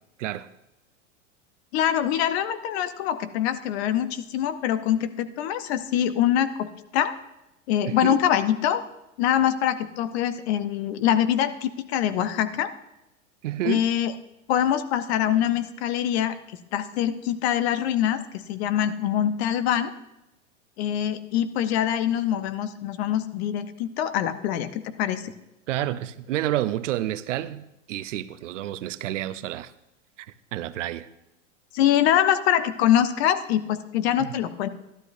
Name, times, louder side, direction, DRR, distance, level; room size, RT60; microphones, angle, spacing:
voice 1, 1.7-7.1 7.7-8.8 9.2-12.7 13.6-14.1 14.5-16.3 16.7-19.9 20.8-25.3 31.7-34.7, left 10 dB, 55° left, 0.9 m, -24 dB
voice 2, 7.9-8.2 13.4-13.8 25.7-29.7 30.2-30.3 30.5-31.1 34.2-34.3, right 13 dB, 70° right, 0.6 m, -29 dB
12.5 x 12.0 x 2.6 m
hypercardioid pair, 100°, 38 cm